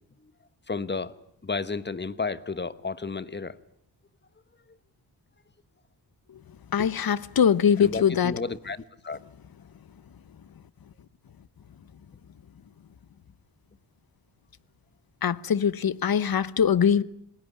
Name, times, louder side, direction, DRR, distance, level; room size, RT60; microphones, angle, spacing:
voice 1, 0.7-1.1 1.4-3.6 7.8-9.2, left 4 dB, 25° left, 1.2 m, -32 dB
voice 2, 6.7-8.3 15.2-17.0, left 7 dB, 55° left, 1.1 m, -22 dB
28.0 x 20.5 x 9.7 m
wide cardioid pair, 110°, 43 cm